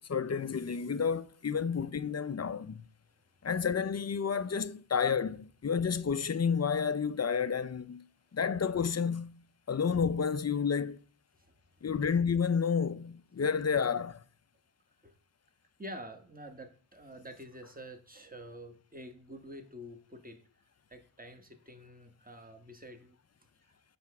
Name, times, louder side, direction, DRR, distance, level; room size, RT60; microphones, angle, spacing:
voice 1, 0.1-2.9 3.4-8.0 8.3-9.4 9.7-11.0 11.8-14.2, left 6 dB, 35° left, 0.5 m, -30 dB
voice 2, 11.4-11.9 15.0-15.1 15.8-20.4 20.9-23.1, equal, 15° right, 1.4 m, -48 dB
7.5 x 3.4 x 6.0 m
cardioid pair, 40°, 50 cm